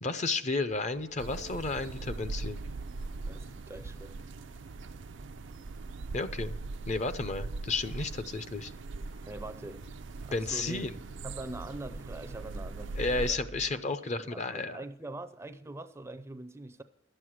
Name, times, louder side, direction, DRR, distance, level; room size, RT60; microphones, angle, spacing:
voice 1, 0.0-2.6 6.1-6.6 6.9-8.7 10.3-11.0 12.9-14.8, left 3 dB, 40° left, 0.6 m, -32 dB
sound 1, 0.7-13.7, right 1 dB, 85° left, 2.7 m, -53 dB
sound 2, 1.2-13.3, right 3 dB, 70° right, 0.4 m, -41 dB
voice 2, 3.3-4.2 9.3-9.9 10.2-10.9 11.2-13.4 14.1-16.8, right 2 dB, 15° right, 0.5 m, -43 dB
11.5 x 7.7 x 6.4 m
head